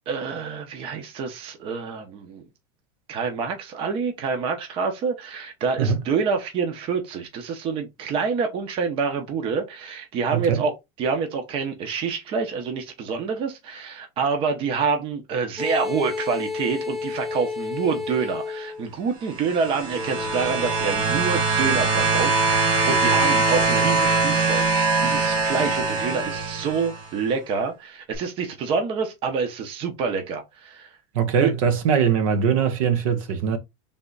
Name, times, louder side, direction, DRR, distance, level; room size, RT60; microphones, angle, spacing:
voice 1, 0.1-2.4 3.1-10.7 11.0-30.9 31.4-31.5, right 5 dB, 30° right, 0.8 m, -27 dB
voice 2, 10.3-10.6 31.1-33.6, right 7 dB, 85° right, 1.0 m, -21 dB
sound 1, 15.6-18.9 19.9-24.3, left 5 dB, ahead, 0.4 m, -33 dB
sound 2, 19.3-27.1 28.1-28.2, right 3 dB, 50° right, 1.5 m, -22 dB
3.5 x 3.1 x 3.9 m
cardioid pair, 175°, 17 cm